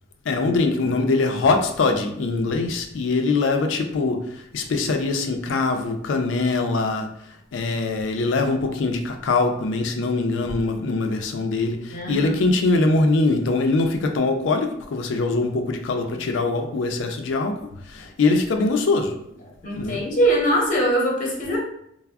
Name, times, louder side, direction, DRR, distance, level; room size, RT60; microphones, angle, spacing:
voice 1, 0.3-7.1 7.5-19.2 19.7-20.0, left 3 dB, 70° left, 0.4 m, -23 dB
voice 2, 11.9-12.3 19.6-21.6, right 1 dB, 45° left, 0.7 m, -22 dB
3.4 x 2.0 x 2.3 m
head